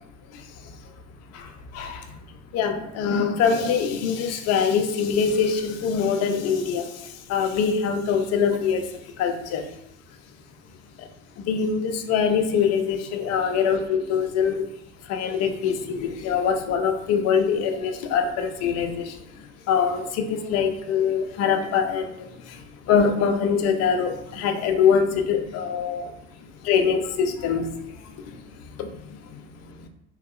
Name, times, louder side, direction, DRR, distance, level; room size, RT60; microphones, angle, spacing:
voice 1, 2.5-6.8 7.3-8.9 9.2-9.6 11.5-14.6 15.1-19.0 19.7-22.1 22.9-26.1 26.6-27.7 28.8-28.9, left 6 dB, 40° left, 6 dB, 0.5 m, -23 dB
3.6 x 2.6 x 2.4 m, 0.81 s
hypercardioid pair, 75°, 41 cm